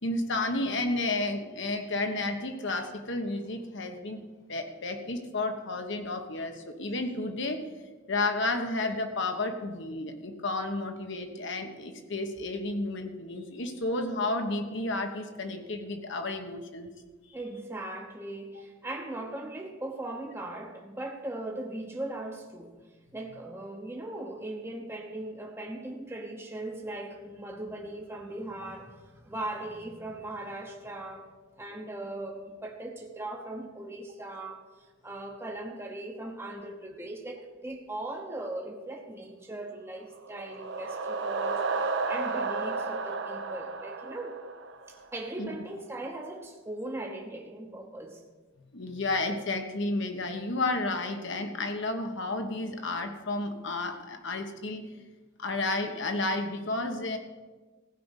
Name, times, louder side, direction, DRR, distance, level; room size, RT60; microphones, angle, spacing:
voice 1, 0.0-4.2 4.5-16.9 45.4-45.6 48.7-55.0 55.4-57.2, left 2 dB, 65° left, 5 dB, 1.3 m, -32 dB
voice 2, 17.3-22.7 23.1-31.3 31.6-34.6 35.0-44.4 44.9-48.2, right 1 dB, 15° right, 0 dB, 0.9 m, -39 dB
sound 1, 40.1-45.0, right 4 dB, 60° right, 0.8 m, -32 dB
15.5 x 5.3 x 8.1 m, 1.3 s
head